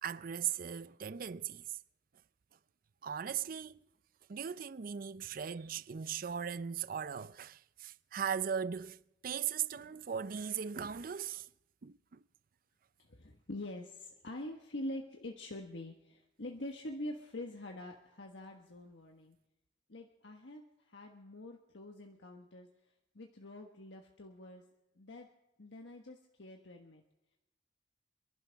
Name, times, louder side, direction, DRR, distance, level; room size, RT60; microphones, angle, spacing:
voice 1, 0.0-1.8 3.0-3.8 4.3-11.5 11.8-12.2, right 8 dB, 50° right, 0.5 m, -38 dB
voice 2, 13.0-19.4 19.9-22.7 23.1-24.6 24.9-25.3 25.6-27.0, left 1 dB, 90° left, 1.4 m, -45 dB
28.5 x 11.5 x 3.5 m
head